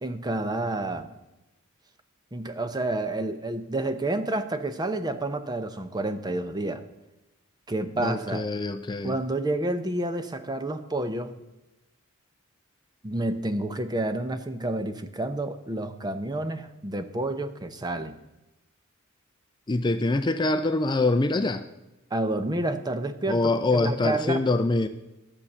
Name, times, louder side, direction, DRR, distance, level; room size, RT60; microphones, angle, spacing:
voice 1, 0.0-1.1 2.3-6.8 7.7-8.5 9.0-11.4 13.0-18.2 22.1-24.4, right 2 dB, 20° right, 9 dB, 0.7 m, -29 dB
voice 2, 8.0-9.2 19.7-21.6 23.3-24.9, left 2 dB, 20° left, 10 dB, 0.4 m, -24 dB
12.5 x 7.0 x 6.7 m, 1.0 s
head